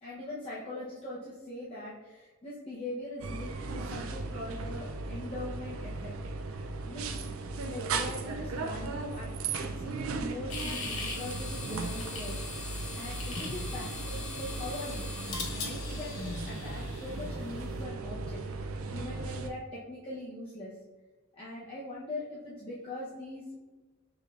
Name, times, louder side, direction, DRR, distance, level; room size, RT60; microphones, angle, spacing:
voice 1, 0.0-6.1 6.9-9.3 9.6-12.4 12.9-18.4 18.9-20.7 21.3-23.6, left 1 dB, 25° left, -8 dB, 0.8 m, -41 dB
sound 1, 3.2-19.5, right 3 dB, 75° right, 0.4 m, -37 dB
sound 2, 10.5-17.8, left 3 dB, 80° left, 1.0 m, -40 dB
6.5 x 3.3 x 2.4 m, 1.2 s
head